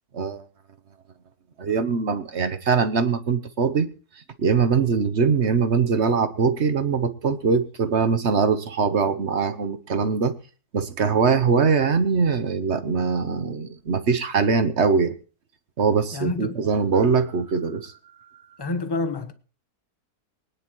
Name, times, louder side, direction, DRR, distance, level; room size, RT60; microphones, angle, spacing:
voice 1, 1.6-3.9 4.4-10.3 10.7-15.1 15.8-17.9, right 5 dB, 50° right, 1.1 m, -22 dB
voice 2, 16.1-16.6 18.6-19.3, left 3 dB, 20° left, 0.8 m, -28 dB
23.5 x 9.9 x 3.1 m
omnidirectional pair, 1.7 m